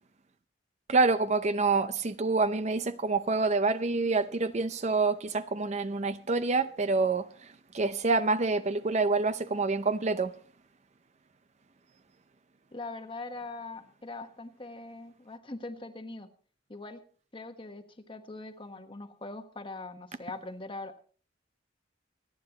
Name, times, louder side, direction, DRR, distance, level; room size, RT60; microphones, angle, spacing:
voice 1, 0.9-7.3 7.7-10.3, right 3 dB, 35° right, 0.6 m, -27 dB
voice 2, 12.7-16.3 16.7-17.0 17.3-21.0, left 2 dB, 30° left, 1.3 m, -42 dB
26.0 x 9.6 x 2.9 m
head